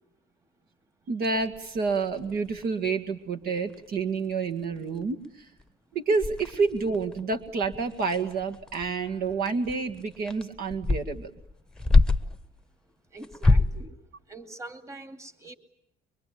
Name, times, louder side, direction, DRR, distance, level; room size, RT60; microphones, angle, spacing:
voice 1, 1.1-5.5 5.9-11.3, right 4 dB, 65° right, 5 dB, 2.0 m, -29 dB
sound 1, 1.4-2.9 3.4-3.5 3.7-4.0 4.3-4.4 4.8-5.2 5.6-5.7 6.2-12.4 13.2-13.9, left 3 dB, 5° left, 1.1 m, -26 dB
sound 2, 8.8-11.4, right 1 dB, 90° right, 5.2 m, -59 dB
voice 2, 13.1-14.0 14.3-15.5, right 2 dB, 15° right, 8 dB, 2.5 m, -43 dB
24.0 x 24.0 x 8.6 m, 0.78 s
cardioid pair, 110°, 17 cm